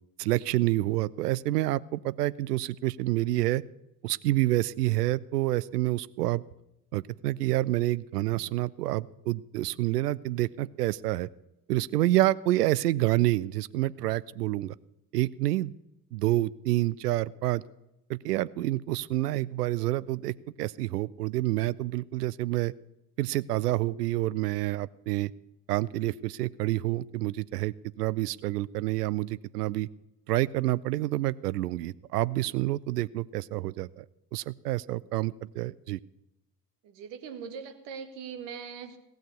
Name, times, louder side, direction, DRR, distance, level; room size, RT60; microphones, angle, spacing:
voice 1, 0.2-3.6 4.0-6.4 6.9-11.3 11.7-14.7 15.1-15.7 16.1-17.6 18.1-22.7 23.2-25.3 25.7-29.9 30.3-34.0 34.3-36.0, right 16 dB, 80° right, 19 dB, 0.5 m, -28 dB
voice 2, 36.8-39.0, right 6 dB, 65° right, 8 dB, 1.8 m, -41 dB
18.0 x 6.6 x 8.1 m, 0.89 s
figure-of-eight pair, 45°, 46 cm